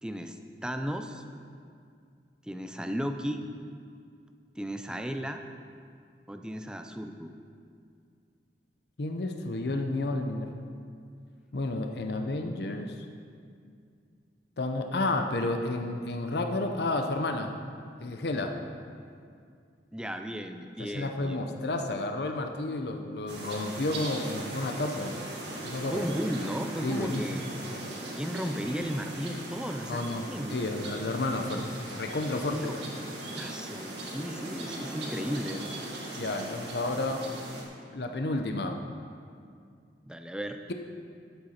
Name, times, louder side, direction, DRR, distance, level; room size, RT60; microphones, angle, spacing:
voice 1, 0.0-1.2 2.4-3.4 4.6-5.4 6.3-7.3 19.9-21.6 25.9-27.4 27.8-30.6 32.5-32.8 33.4-35.8 40.0-40.6, equal, 5° right, 6 dB, 0.5 m, -35 dB
voice 2, 9.0-10.5 11.5-13.0 14.6-17.5 18.0-18.5 20.8-25.1 25.6-26.1 26.8-27.2 29.9-31.6 31.9-32.7 36.1-37.2 37.9-38.8, left 2 dB, 65° left, 5 dB, 0.7 m, -31 dB
sound 1, 23.3-37.6, right 2 dB, 80° right, 1.9 m, -39 dB
12.0 x 7.8 x 4.3 m, 2.3 s
head